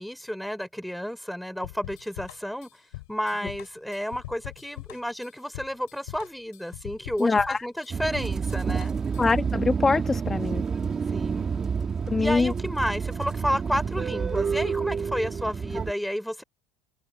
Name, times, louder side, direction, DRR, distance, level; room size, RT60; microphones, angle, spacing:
voice 1, 0.0-2.7 3.1-8.9 11.1-11.5 12.2-16.4, equal, ahead, 5.0 m, -31 dB
sound 1, 1.6-9.5, left 21 dB, 85° left, 4.2 m, -42 dB
voice 2, 7.2-7.6 9.2-10.6 12.1-12.5, left 4 dB, 15° left, 1.3 m, -23 dB
sound 2, 7.9-15.9, right 6 dB, 25° right, 2.2 m, -29 dB
supercardioid pair, 115°, 2 cm